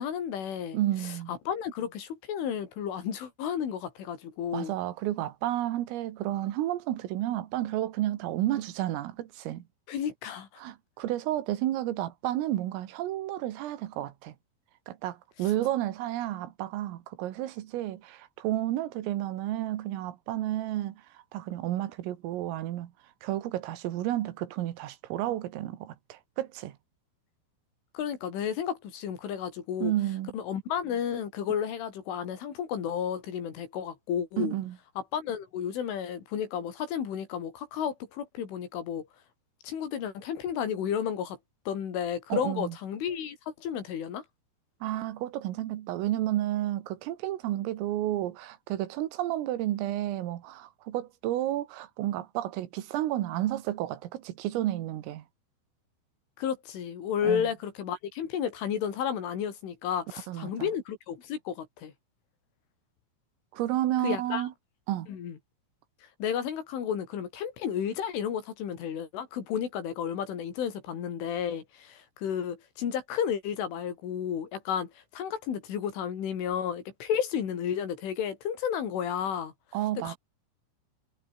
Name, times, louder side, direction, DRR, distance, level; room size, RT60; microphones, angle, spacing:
voice 1, 0.0-0.8 1.3-4.7 9.9-10.5 27.9-29.9 30.3-34.5 35.1-39.1 39.6-41.4 41.7-44.2 56.4-61.9 64.0-64.5 65.1-65.4 66.2-79.5 80.0-80.2, left 8 dB, 70° left, 5.9 m, -32 dB
voice 2, 0.7-1.3 4.5-9.6 10.6-14.3 14.9-21.0 21.3-22.9 23.2-26.8 29.8-30.3 34.4-34.8 42.3-42.8 44.8-55.2 57.2-57.5 60.3-60.7 63.5-64.5 64.9-65.1 79.7-80.1, right 14 dB, 85° right, 4.4 m, -31 dB
omnidirectional pair, 5.8 m